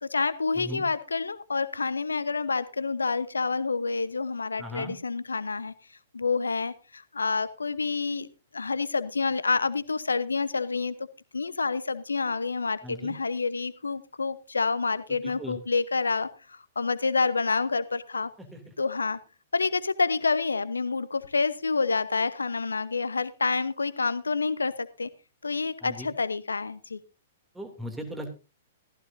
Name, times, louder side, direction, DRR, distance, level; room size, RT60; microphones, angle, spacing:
voice 1, 0.0-5.7 6.1-8.3 8.5-10.9 11.3-18.3 18.8-19.2 19.5-25.1 25.4-27.0, left 4 dB, 75° left, 15 dB, 1.0 m, -28 dB
voice 2, 0.6-0.9 4.6-5.0 12.8-13.1 15.1-15.6 18.4-18.7 25.8-26.1 27.5-28.4, equal, 5° right, 4 dB, 2.8 m, -38 dB
15.0 x 15.0 x 2.7 m, 0.30 s
figure-of-eight pair, 110°, 0 cm